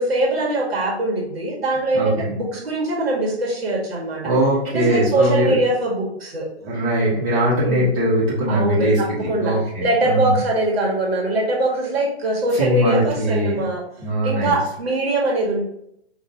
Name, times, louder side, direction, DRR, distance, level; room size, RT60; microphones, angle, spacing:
voice 1, 0.0-4.2 4.7-6.5 7.4-7.9 8.5-13.8 14.2-15.6, right 2 dB, 65° right, -3 dB, 1.6 m, -22 dB
voice 2, 1.9-2.3 4.2-5.6 6.6-10.4 12.6-13.6 14.0-14.6, right 1 dB, 25° right, -9 dB, 1.6 m, -21 dB
5.2 x 2.9 x 2.8 m, 0.75 s
hypercardioid pair, 165°, 33 cm